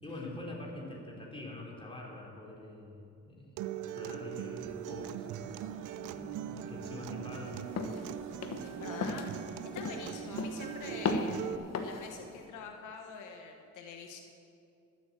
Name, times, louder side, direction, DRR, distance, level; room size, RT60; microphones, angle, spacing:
voice 1, 0.0-3.5 3.9-5.6 6.1-7.6 8.5-8.8, left 2 dB, 20° left, -2 dB, 3.5 m, -45 dB
Acoustic guitar, 3.6-11.6, right 12 dB, 85° right, 0.6 m, -41 dB
sound 1, 4.6-11.0, right 5 dB, 45° right, 0.8 m, -48 dB
sound 2, 7.8-8.0 8.4-8.7 9.0-9.3 9.8-10.1 10.4-10.7 11.0-11.4 11.7-12.1, left 4 dB, 55° left, 1.2 m, -34 dB
voice 2, 8.7-9.3 9.7-11.5 11.8-14.2, left 5 dB, 85° left, 3 dB, 1.2 m, -45 dB
12.5 x 8.0 x 7.4 m, 2.5 s
cardioid pair, 90°, 30 cm